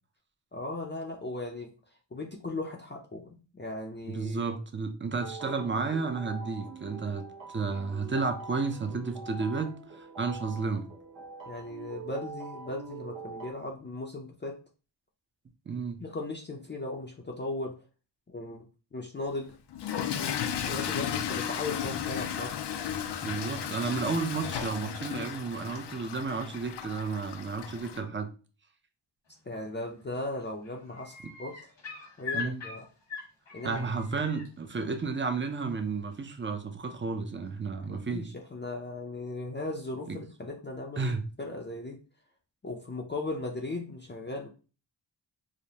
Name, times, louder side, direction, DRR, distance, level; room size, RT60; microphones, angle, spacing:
voice 1, 0.5-1.7 2.1-4.4 11.5-14.6 16.0-17.8 18.3-18.7 18.9-19.5 20.6-22.5 29.4-31.5 32.2-32.8 33.5-33.8 37.8-42.0 42.6-44.5, left 2 dB, 25° left, 0.6 m, -37 dB
voice 2, 4.1-7.2 7.5-10.9 15.7-16.0 23.2-28.3 32.3-32.6 33.6-38.3 40.1-40.2 41.0-41.2, right 4 dB, 25° right, 0.6 m, -32 dB
sound 1, 5.2-13.5, right 4 dB, 75° right, 1.0 m, -44 dB
Toilet flush / Fill (with liquid), 19.7-28.0, left 9 dB, 65° left, 0.5 m, -34 dB
sound 2, 29.8-30.1 30.4-34.5 36.1-36.2, left 6 dB, 85° left, 1.7 m, -40 dB
4.9 x 2.1 x 2.8 m
wide cardioid pair, 85°, 46 cm